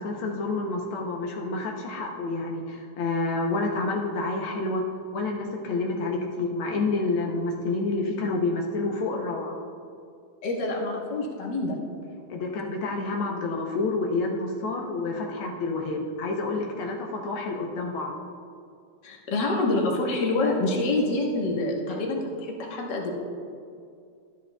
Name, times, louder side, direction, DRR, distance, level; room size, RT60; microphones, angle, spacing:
voice 1, 0.0-4.8 5.1-9.6 12.3-18.1, left 3 dB, 90° left, 0 dB, 1.1 m, -29 dB
voice 2, 10.4-11.8 19.0-23.1, left 2 dB, 55° left, -1 dB, 1.3 m, -26 dB
12.5 x 10.0 x 2.3 m, 2.4 s
omnidirectional pair, 3.4 m